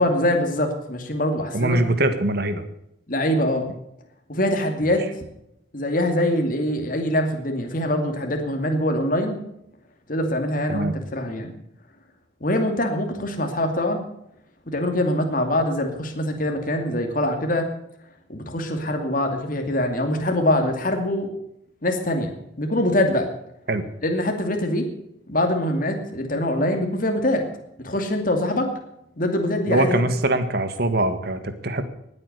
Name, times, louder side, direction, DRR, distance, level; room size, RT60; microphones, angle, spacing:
voice 1, 0.0-1.8 3.1-3.7 4.3-5.1 5.7-9.4 10.1-11.5 12.4-14.0 14.7-17.7 18.3-21.3 21.8-23.3 24.0-24.9 25.3-27.4 27.8-28.7 29.2-30.0, left 1 dB, 45° left, 4 dB, 2.4 m, -23 dB
voice 2, 1.5-2.6 10.7-11.0 23.7-23.8 29.7-31.8, right 2 dB, 55° right, 10 dB, 1.6 m, -22 dB
19.0 x 8.7 x 6.7 m, 0.80 s
head